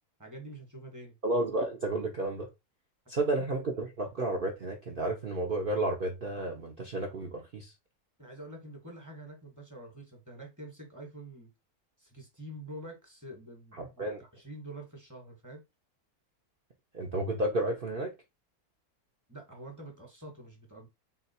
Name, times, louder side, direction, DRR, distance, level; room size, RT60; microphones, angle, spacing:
voice 1, 0.2-1.2 8.2-11.5 12.0-13.8 14.2-15.6 19.3-20.9, right 1 dB, 15° right, 1.2 m, -46 dB
voice 2, 1.2-2.5 3.1-7.7 13.7-14.2 16.9-18.1, right 2 dB, 50° right, 0.7 m, -32 dB
3.8 x 2.4 x 4.1 m
omnidirectional pair, 1.6 m